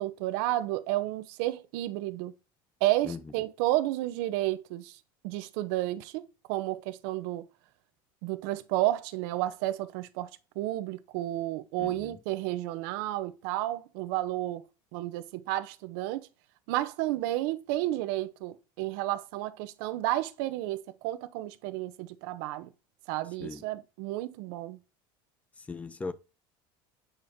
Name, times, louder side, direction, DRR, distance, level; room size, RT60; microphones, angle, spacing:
voice 1, 0.0-2.3 2.8-5.0 5.2-6.2 6.5-7.5 8.2-10.3 10.6-14.6 14.9-16.3 16.7-22.7 23.1-24.8, right 15 dB, 70° right, 0.7 m, -31 dB
voice 2, 11.8-12.2 23.4-23.6 25.6-26.1, left 4 dB, 10° left, 0.4 m, -39 dB
8.8 x 5.0 x 2.7 m
cardioid pair, 160°, 12 cm